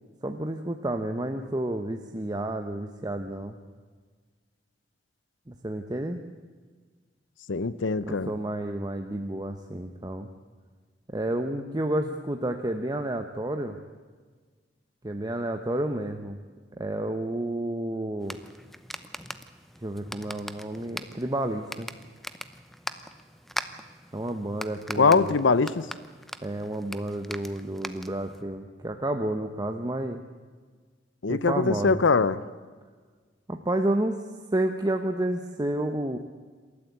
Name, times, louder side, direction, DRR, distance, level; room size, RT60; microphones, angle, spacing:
voice 1, 0.2-3.6 5.5-6.2 8.1-10.3 11.1-13.8 15.0-16.4 16.8-18.4 19.8-21.9 24.1-25.4 26.4-30.2 31.3-32.0 33.5-34.2 34.5-36.2, right 1 dB, 20° right, 5 dB, 1.0 m, -30 dB
voice 2, 7.5-8.3 24.9-25.9 31.2-32.4, left 4 dB, 85° left, 16 dB, 0.7 m, -22 dB
sound 1, 18.2-28.4, equal, ahead, 0.8 m, -41 dB
27.0 x 13.5 x 8.5 m, 1.5 s
head